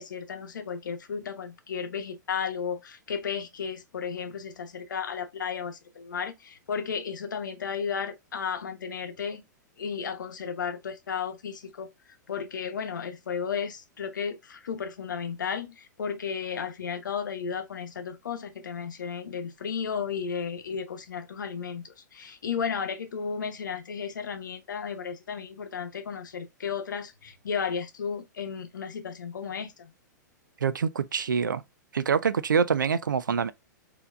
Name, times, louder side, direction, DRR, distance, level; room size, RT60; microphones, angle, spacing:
voice 1, 0.0-9.4 9.8-11.9 12.3-29.9, left 6 dB, 80° left, 0.8 m, -34 dB
voice 2, 30.6-31.6 31.9-33.5, right 6 dB, 90° right, 0.4 m, -25 dB
4.4 x 2.8 x 2.4 m
hypercardioid pair, 115°, 10 cm